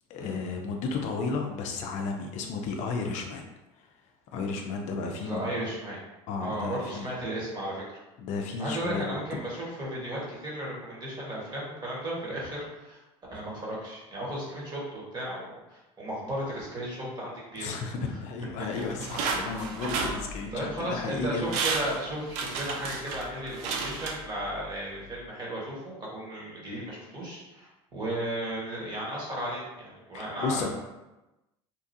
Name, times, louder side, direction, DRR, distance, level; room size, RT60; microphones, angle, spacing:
voice 1, 0.1-3.5 4.3-5.6 6.3-7.1 8.2-9.2 17.6-21.5 30.1-30.7, left 4 dB, 60° left, 2 dB, 0.4 m, -33 dB
voice 2, 5.2-6.0 6.4-8.0 8.6-13.0 13.3-17.7 18.0-18.2 20.5-30.7, right 1 dB, 30° right, -4 dB, 1.3 m, -35 dB
sound 1, 18.7-20.7 21.2-21.3 21.5-24.7 25.0-25.1, right 4 dB, 65° right, 0.5 m, -32 dB
2.9 x 2.3 x 2.6 m, 1.0 s
hypercardioid pair, 80°, 14 cm